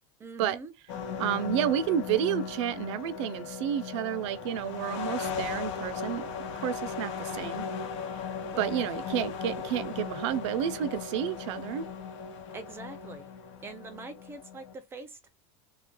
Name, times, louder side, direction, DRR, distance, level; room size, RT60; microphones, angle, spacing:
voice 1, 0.2-0.7 8.4-8.9 12.5-13.3 13.6-15.3, right 3 dB, 15° right, 0.4 m, -44 dB
sound 1, 0.9-14.7, left 6 dB, 85° left, 1.0 m, -37 dB
voice 2, 1.2-6.3 6.6-7.6 8.6-11.9, right 10 dB, 80° right, 0.6 m, -30 dB
3.2 x 2.4 x 3.7 m
supercardioid pair, 165°, 15 cm